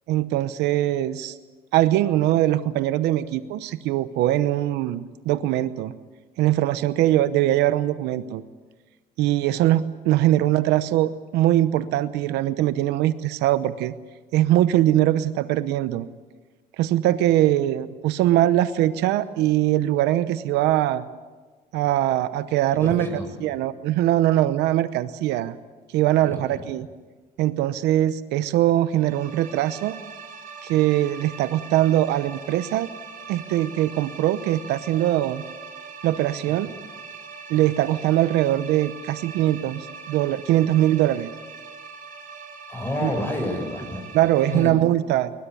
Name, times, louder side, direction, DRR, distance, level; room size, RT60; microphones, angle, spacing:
voice 1, 0.1-1.4 1.7-5.9 6.4-8.4 9.2-13.9 14.3-16.1 16.8-21.1 21.7-23.1 23.4-25.6 25.9-26.9 27.4-30.0 30.6-32.9 33.3-35.4 36.0-36.7 37.5-41.3 43.0-43.1 44.1-45.3, right 13 dB, 90° right, 13 dB, 0.8 m, -22 dB
voice 2, 22.8-23.3 26.2-26.6 36.5-36.7 42.7-44.2 44.5-44.7, left 1 dB, 15° left, 2 dB, 7.7 m, -29 dB
sound 1, 28.9-44.6, right 5 dB, 55° right, 6.9 m, -41 dB
21.5 x 20.0 x 8.4 m, 1.3 s
cardioid pair, 110°, 17 cm